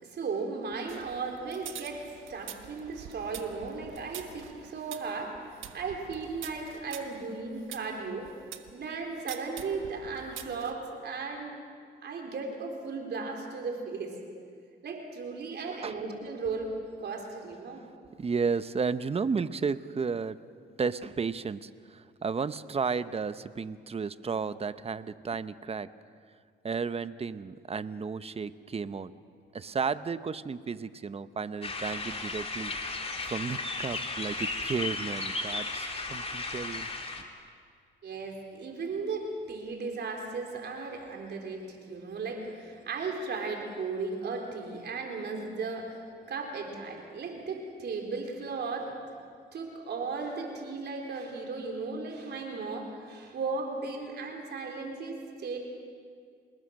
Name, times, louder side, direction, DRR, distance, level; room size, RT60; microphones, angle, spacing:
voice 1, 0.0-8.3 8.7-11.6 12.0-14.2 14.8-16.7 17.0-17.8 38.0-49.0 49.5-55.6, right 4 dB, 60° right, 2 dB, 4.0 m, -36 dB
sound 1, 0.9-8.7 9.3-10.7, right 9 dB, 80° right, 1.5 m, -46 dB
voice 2, 18.2-20.4 20.8-25.9 26.6-29.1 29.5-36.9 37.2-37.3, right 5 dB, 30° right, 14 dB, 0.8 m, -33 dB
sound 2, 31.6-37.2, left 3 dB, 30° left, 2.8 m, -35 dB
28.0 x 20.5 x 6.5 m, 2.1 s
cardioid pair, 90°, 20 cm